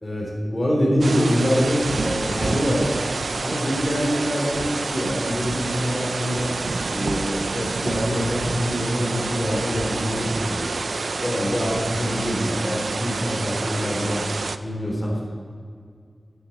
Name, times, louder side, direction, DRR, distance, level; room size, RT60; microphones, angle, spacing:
voice 1, 0.0-2.9 3.4-6.5 6.9-10.7 11.2-14.3 14.6-15.2, equal, 20° left, -4 dB, 3.5 m, -25 dB
sound 1, 1.0-14.6, right 3 dB, 75° right, 0.5 m, -28 dB
9.9 x 9.1 x 7.1 m, 2.2 s
wide cardioid pair, 55°, 0 cm